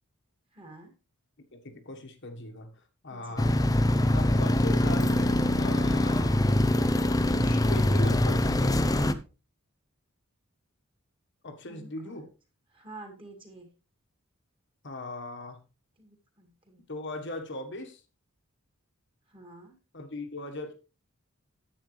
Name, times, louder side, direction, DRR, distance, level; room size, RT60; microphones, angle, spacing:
voice 1, 0.5-0.9 3.1-3.4 11.7-12.2 12.7-13.7 16.0-16.8 19.3-19.7, right 2 dB, 25° right, 3 dB, 2.2 m, -49 dB
voice 2, 1.5-2.7 3.0-3.6 4.1-6.4 7.4-8.9 11.4-12.3 14.8-15.6 16.9-18.0 19.9-20.7, left 2 dB, 55° left, 6 dB, 1.5 m, -39 dB
sound 1, 3.4-9.1, left 1 dB, 15° left, 0.5 m, -24 dB
10.0 x 8.2 x 3.3 m, 0.31 s
head